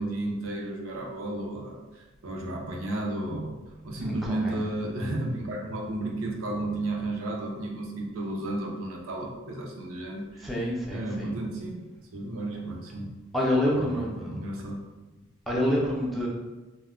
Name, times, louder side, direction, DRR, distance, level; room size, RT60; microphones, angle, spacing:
voice 1, 0.0-3.6 3.8-11.8 12.1-13.1 13.7-14.8, right 1 dB, 75° right, 1 dB, 0.5 m, -33 dB
voice 2, 4.0-4.6 10.4-11.4 13.3-14.3 15.5-16.3, left 1 dB, ahead, -5 dB, 0.4 m, -27 dB
2.2 x 2.1 x 3.5 m, 1.1 s
head